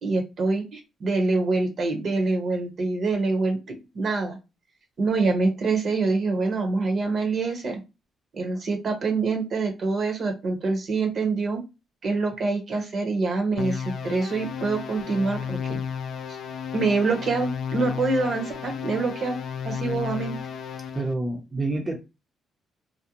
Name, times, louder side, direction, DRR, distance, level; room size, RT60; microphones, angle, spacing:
voice 1, 0.0-4.4 5.0-7.8 8.3-11.6 12.0-15.8 16.7-20.4, right 3 dB, 55° right, 4 dB, 0.8 m, -25 dB
sound 1, 13.6-21.1, left 7 dB, 65° left, 0.3 m, -33 dB
voice 2, 20.9-22.0, right 2 dB, 20° right, 1 dB, 0.6 m, -27 dB
2.5 x 2.0 x 2.9 m, 0.26 s
cardioid pair, 90°, 0 cm